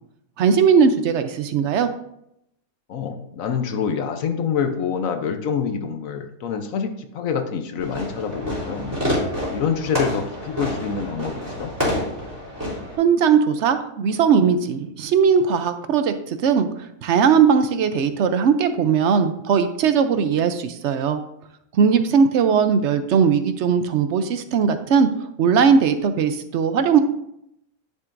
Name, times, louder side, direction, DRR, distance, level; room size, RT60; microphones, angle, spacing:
voice 1, 0.4-1.9 13.0-21.2 21.7-25.1 25.4-27.0, right 6 dB, 65° right, 9 dB, 0.8 m, -19 dB
voice 2, 2.9-8.9 9.5-11.7, left 6 dB, 70° left, 7 dB, 1.1 m, -26 dB
Fireworks, 7.8-12.9, equal, 15° right, 3.2 m, -28 dB
10.5 x 6.1 x 2.6 m, 0.78 s
omnidirectional pair, 1.5 m